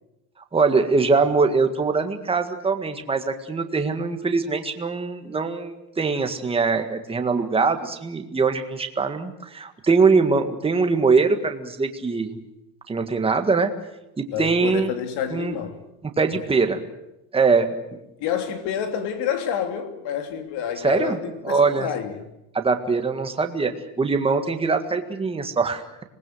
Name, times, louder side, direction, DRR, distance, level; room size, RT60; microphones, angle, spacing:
voice 1, 0.5-12.4 12.9-13.7 14.2-14.9 15.3-15.5 16.2-16.8 17.3-17.8 20.8-21.2 21.4-21.9 22.5-25.8, right 4 dB, 15° right, 1.7 m, -22 dB
voice 2, 14.3-15.8 18.2-22.3, left 8 dB, 65° left, 3.2 m, -28 dB
26.0 x 19.5 x 7.9 m
cardioid pair, 155°, 42 cm